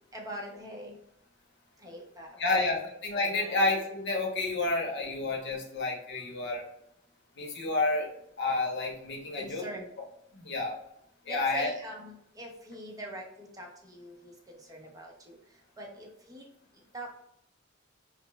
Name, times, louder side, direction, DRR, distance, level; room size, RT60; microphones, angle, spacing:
voice 1, 0.1-0.9 1.8-2.6 3.2-3.5 9.4-9.9 11.3-14.3 14.7-15.4 15.8-16.4 16.9-17.2, equal, 20° right, -1 dB, 0.7 m, -43 dB
voice 2, 2.4-6.6 7.4-8.1 8.4-9.7 10.3-10.8 11.3-11.7, left 2 dB, 60° left, 0 dB, 0.8 m, -30 dB
4.8 x 2.0 x 2.2 m, 0.76 s
head